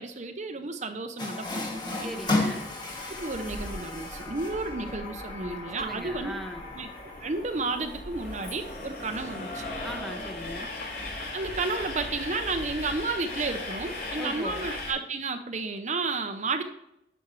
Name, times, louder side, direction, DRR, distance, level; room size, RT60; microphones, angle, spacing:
voice 1, 0.0-2.1 3.2-6.4 6.7-6.9 7.2-9.7 11.3-16.6, right 3 dB, 40° right, 7 dB, 0.6 m, -32 dB
Water tap faucet, 1.2-7.5, left 2 dB, 25° left, 1.3 m, -34 dB
Train, 1.4-14.9, left 2 dB, 55° left, 3.0 m, -39 dB
voice 2, 2.0-2.7 5.8-6.7 9.8-10.7 14.2-14.7, equal, ahead, 4 dB, 0.8 m, -39 dB
9.7 x 6.1 x 3.1 m, 0.82 s
head